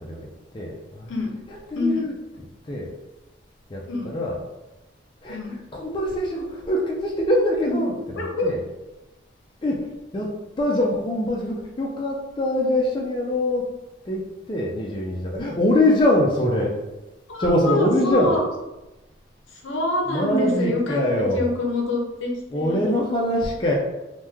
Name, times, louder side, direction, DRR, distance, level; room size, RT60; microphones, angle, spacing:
voice 1, 0.0-1.1 1.5-2.9 3.7-4.4 5.2-8.7 9.6-13.7 14.1-16.8 17.4-18.4 20.1-21.5 22.5-23.7, left 1 dB, 25° left, -2 dB, 0.4 m, -24 dB
voice 2, 8.2-8.5 17.3-18.4 19.5-22.9, left 2 dB, 75° left, 0 dB, 0.6 m, -26 dB
3.0 x 2.1 x 3.4 m, 1.0 s
head